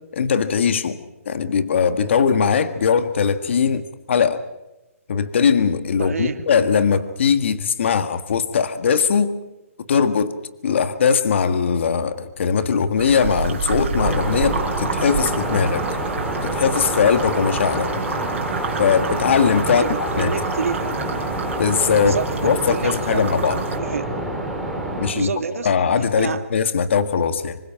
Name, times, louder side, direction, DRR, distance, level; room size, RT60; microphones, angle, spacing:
voice 1, 0.1-1.0 1.3-4.4 5.1-9.4 9.9-10.4 10.6-16.0 16.4-17.9 18.8-19.9 20.2-20.3 21.6-22.2 22.4-23.6 25.0-25.3 25.6-27.6, left 6 dB, 55° left, 10 dB, 1.8 m, -20 dB
voice 2, 6.0-6.4 19.7-21.0 22.0-23.4 23.7-24.1 25.1-25.8 26.2-26.4, right 6 dB, 75° right, 7 dB, 2.7 m, -28 dB
sound 1, 13.0-23.8, right 6 dB, 50° right, 5.4 m, -30 dB
sound 2, 14.0-25.1, right 1 dB, 5° left, 3.2 m, -27 dB
26.0 x 25.0 x 5.9 m, 1.0 s
hypercardioid pair, 165°, 8 cm